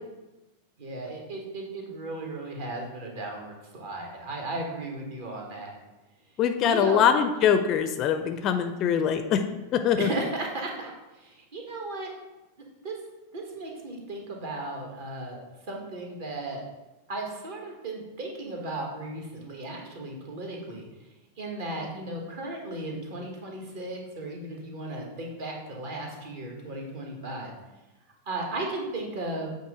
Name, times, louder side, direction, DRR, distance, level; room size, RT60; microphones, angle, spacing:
voice 1, 0.8-5.8 6.7-7.0 10.0-10.9 11.2-12.1 12.8-12.9 13.3-15.4 15.7-16.6 17.1-20.9 21.4-27.5 28.3-29.5, right 2 dB, 50° right, 1 dB, 1.4 m, -35 dB
voice 2, 6.4-9.4 9.7-10.1, left 8 dB, 35° left, 8 dB, 0.4 m, -23 dB
7.7 x 2.7 x 4.9 m, 1.0 s
figure-of-eight pair, 90°, 0 cm